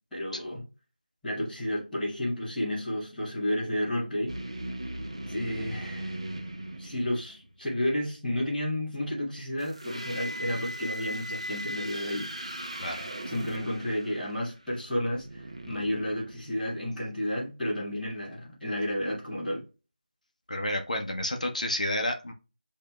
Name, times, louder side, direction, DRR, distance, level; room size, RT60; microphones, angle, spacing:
voice 1, 0.1-0.6 1.2-4.3 5.3-6.2 6.8-12.3 13.2-19.6, left 1 dB, ahead, 0.8 m, -31 dB
sound 1, 4.3-7.6 9.6-16.9, right 1 dB, 40° right, 0.7 m, -39 dB
voice 2, 20.5-22.3, left 1 dB, 50° left, 0.7 m, -30 dB
8.3 x 2.8 x 2.2 m
figure-of-eight pair, 175°, 5 cm